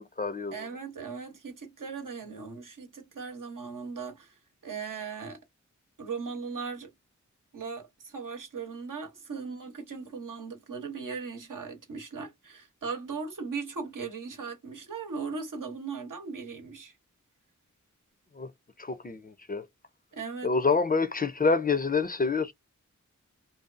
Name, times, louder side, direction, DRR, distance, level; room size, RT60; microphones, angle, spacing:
voice 1, 0.0-0.7 18.4-18.5 18.8-19.7 20.4-22.5, left 4 dB, 30° left, 0.4 m, -27 dB
voice 2, 0.5-4.3 4.6-5.4 6.0-6.9 7.5-16.9 20.1-20.5, right 5 dB, 85° right, 0.9 m, -38 dB
2.6 x 2.3 x 2.4 m
wide cardioid pair, 50°, 31 cm